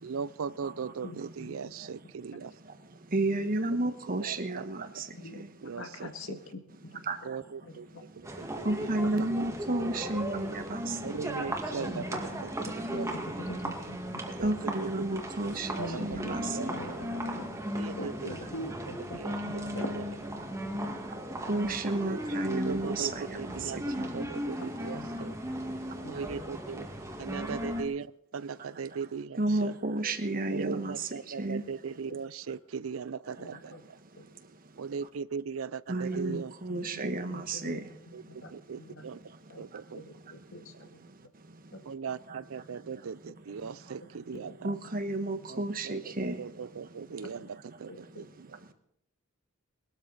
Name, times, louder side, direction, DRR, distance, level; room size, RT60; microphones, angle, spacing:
voice 1, 0.0-2.5 3.8-5.0 5.6-6.4 7.2-9.3 11.0-13.4 14.4-14.5 14.8-15.2 15.6-17.0 17.7-18.4 19.1-20.0 22.1-23.8 24.1-25.4 26.1-26.9 27.2-29.7 30.5-34.0 34.8-36.5 38.1-39.2 39.6-40.0 41.9-44.7 45.5-48.6, right 6 dB, 80° right, 19 dB, 0.5 m, -39 dB
voice 2, 1.0-1.7 2.3-2.4 5.2-5.4 5.8-6.4 6.9-7.0 7.6-8.0 11.1-12.4 12.9-13.0 13.4-14.2 15.8-17.6 18.0-19.9 20.8-20.9 24.0-24.3 24.8-25.1 26.0-26.5 27.7-27.8 30.8-30.9 33.4-33.8 34.2-34.3 36.1-36.4 36.7-38.5 38.8-39.0 39.5-39.7 39.9-41.1 43.2-43.3 44.3-44.4 45.2-45.3 47.2-47.3 47.9-48.2, left 2 dB, 80° left, 5 dB, 1.9 m, -44 dB
voice 3, 3.1-5.1 5.3-5.5 7.1-7.2 8.6-11.2 14.4-15.7 16.0-16.7 21.5-24.1 29.4-31.1 31.4-31.6 35.9-37.8 42.3-42.4 44.6-46.4, right 2 dB, 45° right, 9 dB, 1.3 m, -32 dB
sound 1, 8.2-27.8, equal, 15° right, 1.9 m, -36 dB
21.0 x 13.0 x 4.1 m, 0.75 s
head